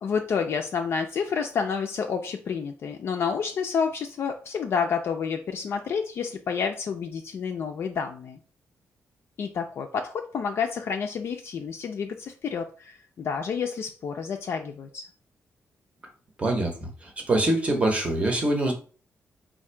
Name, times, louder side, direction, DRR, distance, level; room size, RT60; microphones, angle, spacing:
voice 1, 0.0-8.4 9.4-15.0, left 6 dB, 50° left, 4 dB, 0.4 m, -29 dB
voice 2, 16.4-18.7, right 1 dB, 25° right, 2 dB, 0.7 m, -24 dB
3.7 x 2.5 x 4.3 m, 0.38 s
wide cardioid pair, 170°, 5 cm